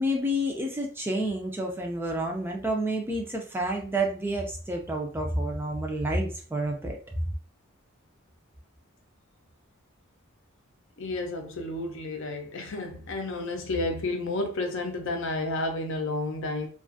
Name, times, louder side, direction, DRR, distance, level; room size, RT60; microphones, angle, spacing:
voice 1, 0.0-7.0, right 1 dB, 10° right, 0.3 m, -29 dB
voice 2, 11.0-16.7, left 2 dB, 60° left, 0.5 m, -31 dB
2.4 x 2.3 x 2.5 m
head